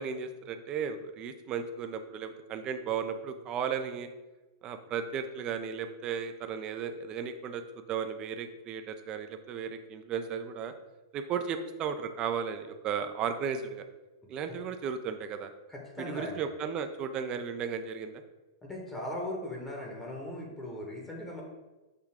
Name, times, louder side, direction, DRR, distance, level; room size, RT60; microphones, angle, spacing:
voice 1, 0.0-4.1 4.6-7.6 7.9-10.7 11.1-13.9 14.3-15.5 16.0-18.2, right 7 dB, 35° right, 8 dB, 0.5 m, -35 dB
voice 2, 15.7-16.4 18.6-21.4, left 1 dB, 10° left, -1 dB, 1.0 m, -38 dB
6.6 x 2.3 x 3.5 m, 1.1 s
hypercardioid pair, 110°, 2 cm